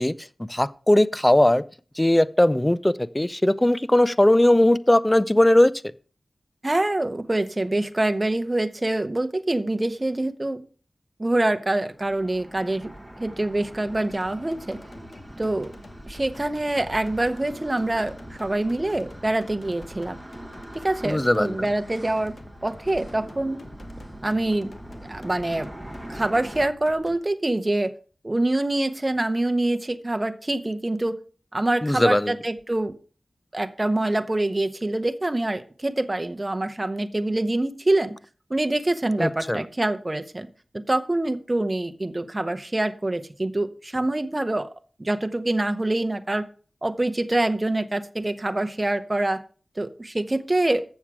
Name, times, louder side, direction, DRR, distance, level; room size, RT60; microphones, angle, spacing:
voice 1, 0.0-1.6 2.0-5.7 21.0-21.6 31.8-32.3 39.2-39.6, left 1 dB, 15° left, 0.4 m, -19 dB
voice 2, 6.6-10.6 11.2-12.9 13.2-14.8 15.4-15.7 16.1-20.2 20.7-22.3 22.6-23.6 24.2-24.7 25.1-25.7 26.1-27.9 28.2-31.2 31.5-32.9 33.5-38.1 38.5-40.5 40.7-44.7 45.0-46.5 46.8-49.4 49.8-50.8, right 2 dB, 30° right, 0.8 m, -25 dB
sound 1, 11.8-26.7, right 1 dB, 5° right, 1.4 m, -42 dB
sound 2, 14.1-27.2, left 2 dB, 65° left, 1.1 m, -48 dB
7.4 x 7.1 x 4.8 m
wide cardioid pair, 60°, 0 cm